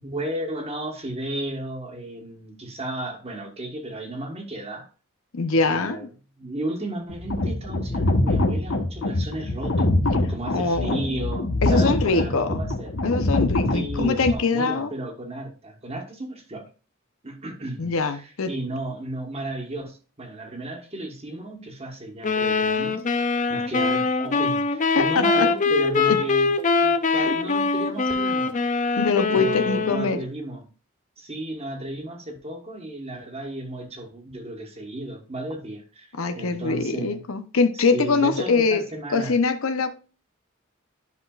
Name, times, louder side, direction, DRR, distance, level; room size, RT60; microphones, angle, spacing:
voice 1, 0.0-4.9 5.5-6.1 6.4-9.9 10.3-13.0 13.7-16.7 17.2-26.5 26.8-28.6 29.3-30.7 31.2-37.2 37.7-39.3, right 1 dB, 30° right, 1.4 m, -34 dB
voice 2, 5.3-6.1 10.5-11.0 11.6-12.6 13.0-14.9 17.8-18.5 24.9-25.5 26.1-26.2 27.1-27.3 29.0-30.2 36.2-38.8 39.1-39.9, left 4 dB, 90° left, 0.8 m, -23 dB
sound 1, 7.1-14.3, left 2 dB, 65° left, 1.2 m, -24 dB
sound 2, 22.2-30.2, left 4 dB, 35° left, 0.6 m, -23 dB
10.5 x 5.9 x 2.4 m
head